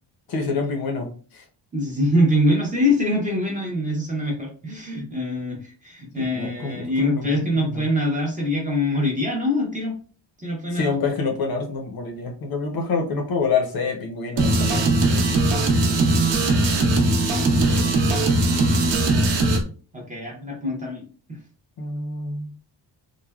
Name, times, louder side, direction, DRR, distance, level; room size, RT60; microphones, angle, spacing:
voice 1, 0.3-1.4 6.2-7.9 10.7-14.9 21.8-22.5, left 4 dB, 50° left, 3 dB, 0.6 m, -27 dB
voice 2, 1.7-10.0 10.4-10.9 15.8-16.2 19.9-21.4, left 1 dB, 15° right, -1 dB, 0.5 m, -24 dB
sound 1, 14.4-19.6, right 2 dB, 70° right, 0.7 m, -19 dB
3.2 x 2.1 x 2.2 m, 0.39 s
wide cardioid pair, 180°, 46 cm